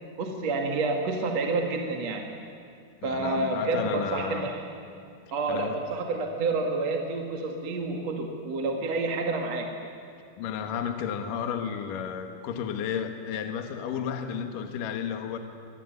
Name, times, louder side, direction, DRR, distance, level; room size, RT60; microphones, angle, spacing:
voice 1, 0.2-2.3 3.0-4.6 5.3-9.7, right 3 dB, 45° right, 2 dB, 2.7 m, -29 dB
voice 2, 3.0-4.5 5.5-5.8 10.4-15.4, left 7 dB, 60° left, 6 dB, 2.8 m, -32 dB
25.5 x 21.0 x 9.4 m, 2.4 s
omnidirectional pair, 4.8 m